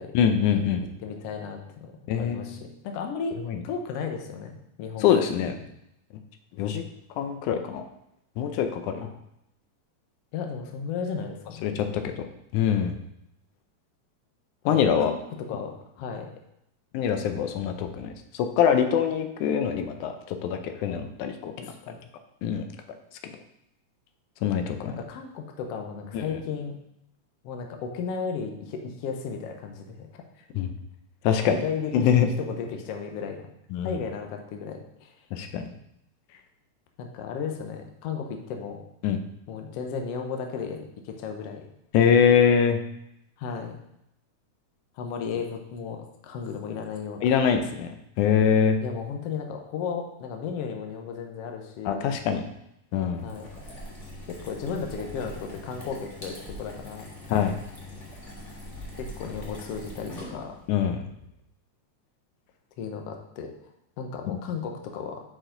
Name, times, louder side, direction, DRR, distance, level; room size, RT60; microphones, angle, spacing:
voice 1, 0.1-0.9 2.1-2.6 3.5-3.6 5.0-5.5 6.6-6.8 7.2-7.9 8.4-9.1 11.6-12.0 12.5-13.0 14.7-15.1 16.9-21.7 22.4-22.7 24.4-25.0 26.1-26.2 30.5-30.7 31.2-31.6 31.9-32.3 33.7-34.0 35.3-35.7 39.0-39.2 41.9-42.8 47.2-48.8 51.9-52.4 52.9-53.2 57.3-57.5 60.7-61.0 64.3-64.4, left 8 dB, 90° left, 7 dB, 2.2 m, -24 dB
voice 2, 1.0-1.9 2.1-5.5 10.3-11.8 14.6-15.2 15.5-16.3 21.6-22.0 24.9-26.8 27.4-30.1 30.4-30.5 31.6-32.1 32.4-33.5 33.8-35.1 37.0-38.8 39.5-41.6 43.4-43.8 44.9-47.3 48.8-52.1 53.2-53.5 54.3-57.1 59.0-60.6 62.8-63.5 64.0-65.2, left 6 dB, 65° left, 3 dB, 1.7 m, -34 dB
sound 1, 53.1-60.7, left 1 dB, 35° left, 1.2 m, -42 dB
8.5 x 4.9 x 3.8 m, 0.79 s
omnidirectional pair, 3.4 m